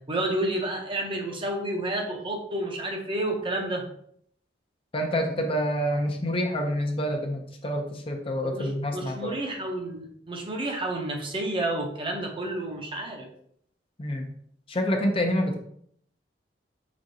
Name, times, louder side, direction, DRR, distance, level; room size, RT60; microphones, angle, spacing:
voice 1, 0.1-3.9 8.4-13.3, right 1 dB, 30° right, 2 dB, 0.8 m, -30 dB
voice 2, 4.9-9.4 14.0-14.3 14.7-15.6, equal, 30° left, 3 dB, 0.6 m, -27 dB
5.2 x 3.6 x 2.7 m, 0.67 s
head